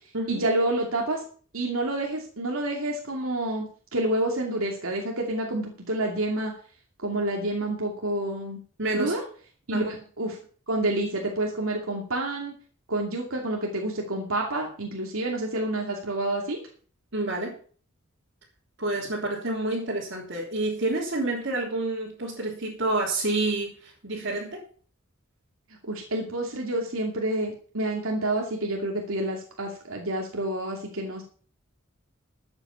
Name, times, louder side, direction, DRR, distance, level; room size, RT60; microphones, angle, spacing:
voice 1, 0.3-1.2 1.5-3.7 3.9-6.5 7.0-8.6 8.9-9.2 9.7-10.4 10.7-12.5 12.9-16.6 25.8-31.2, right 1 dB, 85° right, 0 dB, 2.6 m, -28 dB
voice 2, 8.8-9.1 9.7-9.9 17.1-17.5 18.8-24.6, right 2 dB, 55° right, -5 dB, 3.3 m, -28 dB
13.0 x 8.9 x 5.7 m, 0.43 s
head